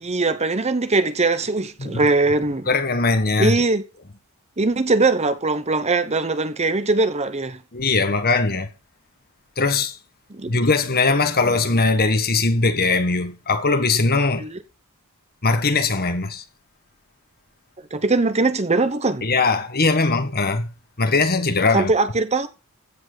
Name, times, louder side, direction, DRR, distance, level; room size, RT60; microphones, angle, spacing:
voice 1, 0.0-2.7 3.4-3.8 4.6-7.6 10.3-10.6 14.4-14.6 17.9-19.2 21.7-22.5, right 3 dB, 30° right, 1.0 m, -21 dB
voice 2, 2.7-3.6 7.7-8.7 9.6-10.0 10.5-14.5 15.4-16.4 19.2-20.7 21.0-21.9, left 3 dB, 45° left, 1.6 m, -20 dB
15.5 x 6.1 x 6.7 m
head